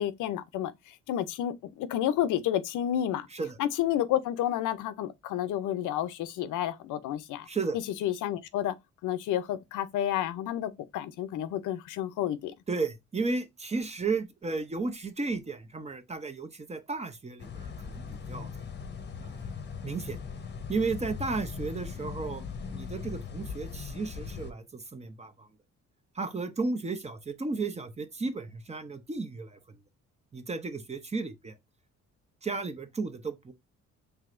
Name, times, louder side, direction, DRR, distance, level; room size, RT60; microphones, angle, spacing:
voice 1, 0.0-3.3 3.6-7.5 7.7-8.8 9.0-12.5, left 11 dB, 85° left, 0.6 m, -30 dB
voice 2, 7.5-7.8 12.7-18.7 19.2-19.4 19.8-20.2 20.7-22.4 22.7-25.5 26.1-29.6 30.3-31.6 32.4-33.5, right 4 dB, 20° right, 0.7 m, -34 dB
sound 1, 17.4-24.5, left 6 dB, 35° left, 0.8 m, -39 dB
4.7 x 3.3 x 2.5 m
cardioid pair, 90°, 30 cm